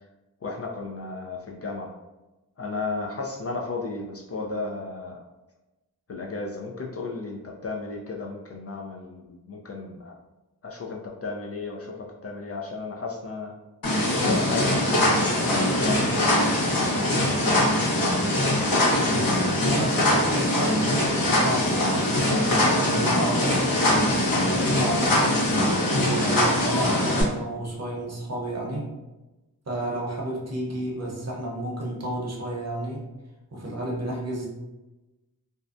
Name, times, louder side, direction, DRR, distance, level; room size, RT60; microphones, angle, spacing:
voice 1, 0.4-1.9 2.6-5.2 6.1-10.1 10.6-13.5 14.1-17.8, left 3 dB, 40° left, -1 dB, 0.4 m, -34 dB
sound 1, 13.8-27.2, left 1 dB, 60° left, 0.9 m, -22 dB
voice 2, 19.5-22.2 22.5-25.3 25.9-28.9 29.7-33.1 33.5-34.5, right 1 dB, 40° right, -2 dB, 0.8 m, -32 dB
2.6 x 2.1 x 2.4 m, 1.1 s
cardioid pair, 40°, 38 cm